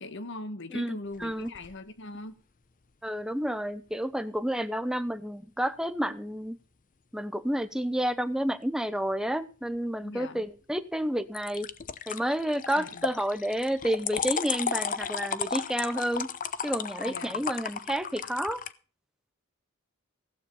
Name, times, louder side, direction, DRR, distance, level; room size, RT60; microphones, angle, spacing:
voice 1, 0.0-2.4 10.0-10.5 12.7-13.1 17.0-17.5, left 2 dB, 55° left, 1.4 m, -41 dB
voice 2, 0.7-1.5 3.0-6.6 7.1-11.7 12.1-16.3 16.6-18.6, equal, 5° right, 0.8 m, -30 dB
sound 1, 1.1-1.8 11.3-18.7, left 7 dB, 40° left, 0.7 m, -34 dB
15.5 x 8.7 x 5.5 m
head